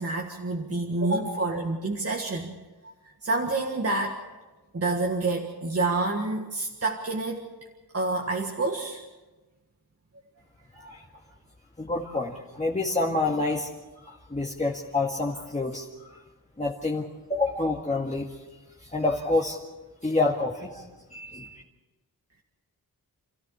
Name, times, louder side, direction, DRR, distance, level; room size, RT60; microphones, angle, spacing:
voice 1, 0.0-2.5 2.8-2.9 3.2-4.2 4.7-7.5 7.9-9.0, right 2 dB, 40° right, 0 dB, 1.8 m, -28 dB
voice 2, 11.8-13.7 14.0-16.2 16.6-18.4 18.8-19.6 20.0-21.6, left 2 dB, 20° left, -3 dB, 1.9 m, -28 dB
28.5 x 14.5 x 7.0 m, 1.2 s
wide cardioid pair, 105°, 38 cm